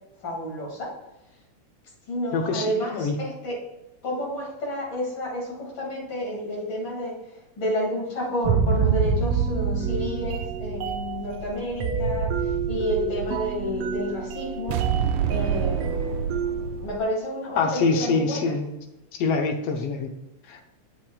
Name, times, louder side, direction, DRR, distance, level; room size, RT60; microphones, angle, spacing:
voice 1, 0.2-0.9 2.1-3.6 4.0-14.8 15.3-16.0 16.8-18.5, equal, 40° left, -4 dB, 3.1 m, -30 dB
voice 2, 2.3-3.1 17.5-18.7 19.1-20.1 20.5-20.6, left 4 dB, 70° left, 4 dB, 1.6 m, -25 dB
sound 1, 8.4-17.0, right 6 dB, 80° right, 1.4 m, -26 dB
8.1 x 7.3 x 2.4 m, 0.96 s
omnidirectional pair, 3.3 m